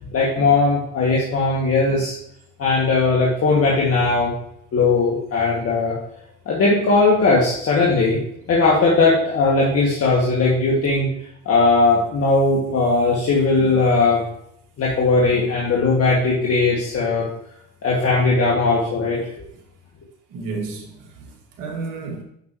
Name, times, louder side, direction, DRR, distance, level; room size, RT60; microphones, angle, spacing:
voice 1, 0.1-2.1 2.6-4.3 4.7-5.9 6.5-8.2 8.5-11.1 11.5-14.2 14.8-17.3 17.8-19.2, left 3 dB, 40° left, 2.2 m, -18 dB
voice 2, 20.3-22.2, right 4 dB, 55° right, 2.4 m, -32 dB
9.8 x 6.0 x 3.1 m
hypercardioid pair, 85°, 37 cm